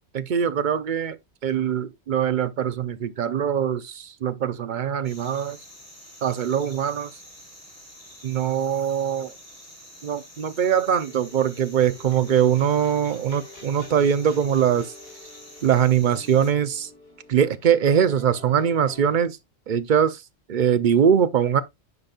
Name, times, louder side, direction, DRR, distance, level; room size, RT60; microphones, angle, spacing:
voice 1, 0.1-1.2 1.4-5.6 6.2-7.1 8.2-9.3 10.0-14.9 15.6-16.9 17.3-19.4 19.7-20.2 20.5-21.6, right 8 dB, 55° right, 0.7 m, -22 dB
sound 1, 5.0-16.5, equal, 35° left, 3.7 m, -47 dB
sound 2, 11.0-19.1, left 3 dB, 65° left, 3.0 m, -47 dB
9.7 x 5.2 x 2.4 m
omnidirectional pair, 1.1 m